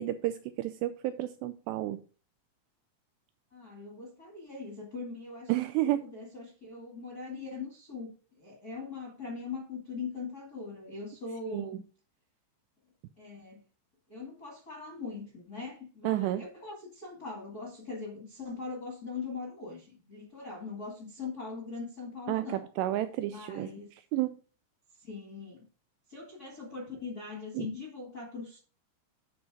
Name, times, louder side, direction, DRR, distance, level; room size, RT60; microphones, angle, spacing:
voice 1, 0.0-2.0 5.5-6.1 11.5-11.8 16.0-16.5 22.3-23.7 24.1-24.4 27.5-27.7, right 14 dB, 85° right, 2.5 m, -31 dB
voice 2, 3.5-5.5 5.8-8.1 8.4-11.8 13.2-13.6 14.1-22.7 23.3-23.9 25.0-25.7 26.1-28.6, left 4 dB, 45° left, 1.2 m, -41 dB
10.5 x 4.9 x 4.9 m
omnidirectional pair, 5.4 m